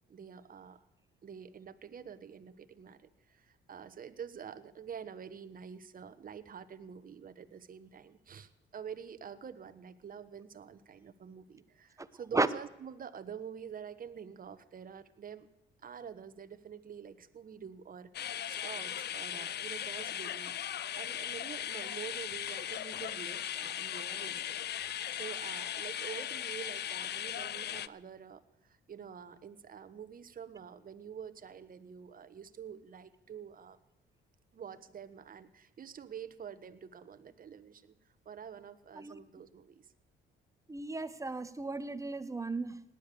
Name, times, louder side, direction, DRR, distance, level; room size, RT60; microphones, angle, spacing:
voice 1, 0.1-0.8 1.2-15.5 15.8-20.6 20.9-33.8 34.5-37.9 38.2-39.9, right 7 dB, 45° right, 11 dB, 1.2 m, -47 dB
sound 1, 18.1-27.9, left 10 dB, 55° left, 0.6 m, -38 dB
voice 2, 40.7-42.8, right 3 dB, 15° right, 13 dB, 1.1 m, -34 dB
18.0 x 10.5 x 6.9 m, 0.90 s
cardioid pair, 90°, 20 cm